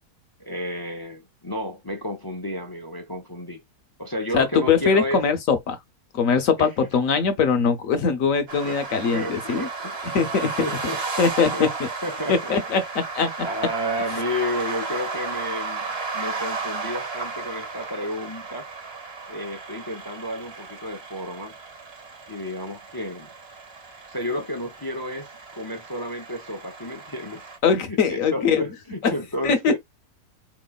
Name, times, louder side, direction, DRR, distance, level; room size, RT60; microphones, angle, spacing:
voice 1, 0.4-3.6 4.0-5.3 6.6-6.7 8.6-8.8 9.1-11.0 11.5-11.7 12.0-12.6 13.4-18.7 19.3-21.6 22.3-23.3 24.1-27.5 27.7-29.8, left 1 dB, 35° left, 0.3 m, -32 dB
voice 2, 4.3-5.8 6.1-9.7 10.1-10.5 11.2-11.9 12.3-13.3 27.6-28.6 29.0-29.1 29.4-29.8, left 6 dB, 65° left, 1.1 m, -21 dB
sound 1, 8.5-27.6, right 4 dB, 45° right, 1.3 m, -34 dB
4.5 x 3.1 x 2.3 m
omnidirectional pair, 1.7 m